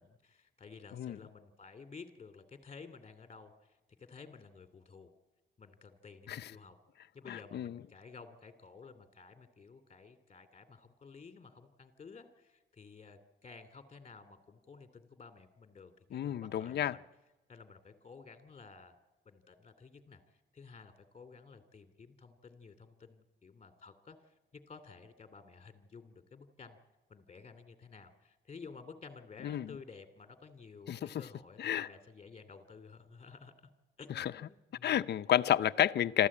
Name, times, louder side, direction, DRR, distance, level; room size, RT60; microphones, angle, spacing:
voice 1, 0.0-5.1 5.6-6.8 7.1-17.0 17.5-18.9 19.2-26.8 27.1-33.7 34.0-35.0 36.0-36.1, left 5 dB, 30° left, 8 dB, 2.8 m, -53 dB
voice 2, 7.3-7.8 16.1-17.0 29.4-29.8 30.9-31.2 31.6-31.9 34.1-34.3 34.8-36.3, left 11 dB, 60° left, 12 dB, 0.7 m, -31 dB
26.0 x 14.0 x 8.7 m, 1.1 s
cardioid pair, 90°, 20 cm